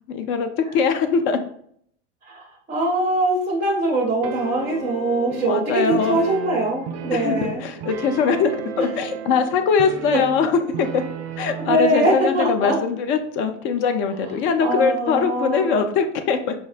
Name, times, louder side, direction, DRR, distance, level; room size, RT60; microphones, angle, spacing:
voice 1, 0.1-1.4 5.3-6.2 7.1-11.0 11.4-16.5, left 6 dB, 35° left, 7 dB, 0.4 m, -22 dB
voice 2, 2.3-7.6 8.8-8.9 10.1-10.2 11.6-12.7 14.6-15.9, right 1 dB, 20° right, -2 dB, 0.6 m, -22 dB
sound 1, 4.2-12.0, right 8 dB, 60° right, 0.4 m, -34 dB
4.9 x 2.0 x 2.5 m, 0.64 s
figure-of-eight pair, 90°, 37 cm